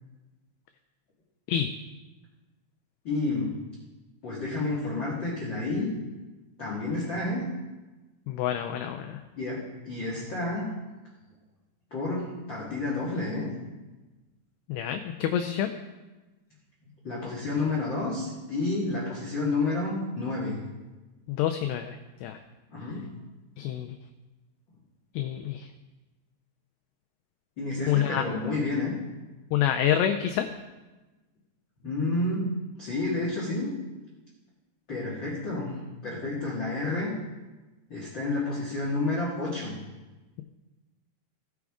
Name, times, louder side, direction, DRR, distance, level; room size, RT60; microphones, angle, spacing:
voice 1, 3.0-3.5 4.2-5.9 6.6-7.5 9.4-10.7 11.9-13.5 17.0-20.6 22.7-23.1 27.6-28.9 31.8-32.5 32.8-33.7 34.9-35.8 36.0-37.1 37.9-39.7, left 2 dB, 70° left, -5 dB, 1.1 m, -30 dB
voice 2, 8.3-9.2 14.7-15.7 21.3-22.4 23.6-24.0 25.1-25.7 27.9-28.2 29.5-30.5, left 10 dB, 90° left, 6 dB, 2.4 m, -27 dB
17.5 x 6.1 x 3.6 m, 1.2 s
omnidirectional pair, 5.4 m